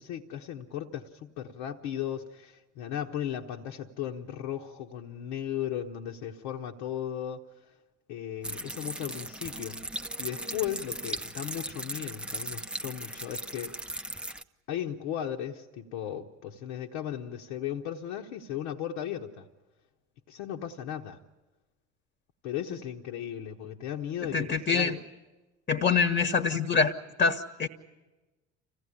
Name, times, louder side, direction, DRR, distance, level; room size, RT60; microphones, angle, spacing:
voice 1, 0.0-7.5 8.1-9.8 10.2-13.7 14.7-19.5 20.3-21.2 22.4-25.0, left 10 dB, 60° left, 1.1 m, -36 dB
sound 1, 8.4-14.4, right 1 dB, 5° right, 0.7 m, -37 dB
voice 2, 24.3-25.0 25.7-26.9 27.2-27.7, left 5 dB, 25° left, 1.3 m, -25 dB
26.5 x 16.0 x 9.9 m
figure-of-eight pair, 60°, 35 cm